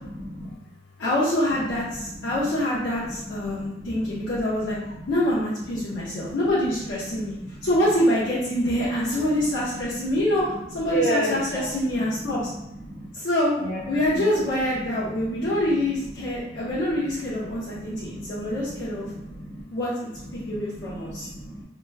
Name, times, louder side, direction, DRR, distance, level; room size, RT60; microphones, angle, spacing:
voice 1, 0.2-0.5 1.9-2.4 3.5-4.2 4.8-5.0 5.8-6.4 7.2-7.7 8.8-8.9 10.9-11.7 11.9-12.0 12.9-13.1 13.6-13.8 14.1-14.3 15.1-15.2 16.4-16.6 17.6-19.6 20.3-21.6, right 1 dB, 60° left, -7 dB, 1.4 m, -33 dB
voice 2, 1.0-4.8 5.1-7.3 7.6-10.4 10.7-12.5 13.1-13.5 13.9-19.1 19.7-19.9 20.3-21.3, left 1 dB, 80° left, -9 dB, 0.9 m, -25 dB
4.6 x 2.9 x 2.2 m, 0.88 s
head